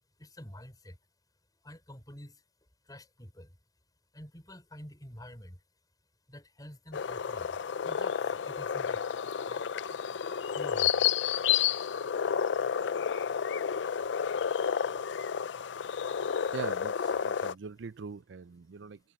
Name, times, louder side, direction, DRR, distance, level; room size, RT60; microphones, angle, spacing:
voice 1, 0.2-1.0 1.6-2.4 2.8-3.6 4.1-5.6 6.3-9.1 9.5-9.7 10.5-11.1, left 1 dB, 20° left, 5.8 m, -48 dB
sound 1, 6.9-17.5, left 8 dB, 80° left, 0.5 m, -31 dB
voice 2, 16.5-19.0, right 5 dB, 85° right, 0.5 m, -42 dB
head